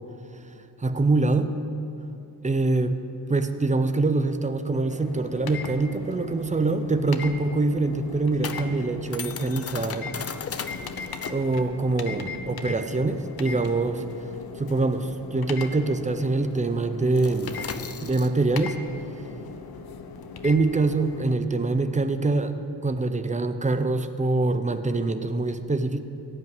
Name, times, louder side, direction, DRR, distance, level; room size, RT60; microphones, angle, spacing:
voice 1, 0.8-1.5 2.4-3.0 3.3-10.1 11.3-14.0 14.6-17.6 18.0-18.8 20.4-22.5 22.8-26.0, right 3 dB, 20° right, 9 dB, 0.6 m, -24 dB
sound 1, 4.9-21.3, left 5 dB, 65° left, 1.0 m, -39 dB
sound 2, 6.9-15.9 16.1-16.4 16.7-22.4, left 6 dB, 35° left, 0.7 m, -39 dB
15.5 x 5.7 x 9.5 m, 2.8 s
wide cardioid pair, 110°, 41 cm